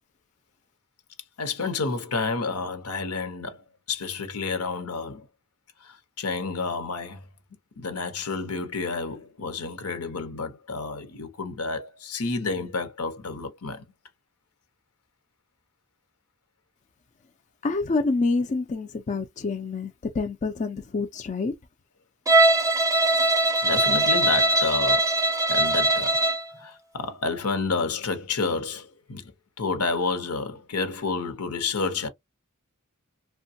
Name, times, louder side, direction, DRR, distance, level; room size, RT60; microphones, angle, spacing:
voice 1, 1.4-5.3 5.8-7.2 7.8-13.8 23.6-25.1 25.5-26.2 26.6-29.3 29.6-32.1, left 4 dB, 85° left, 0.9 m, -30 dB
voice 2, 17.6-21.5, left 3 dB, 35° left, 0.4 m, -27 dB
Bowed string instrument, 22.3-26.5, right 2 dB, 15° right, 0.5 m, -21 dB
3.1 x 2.2 x 2.6 m
head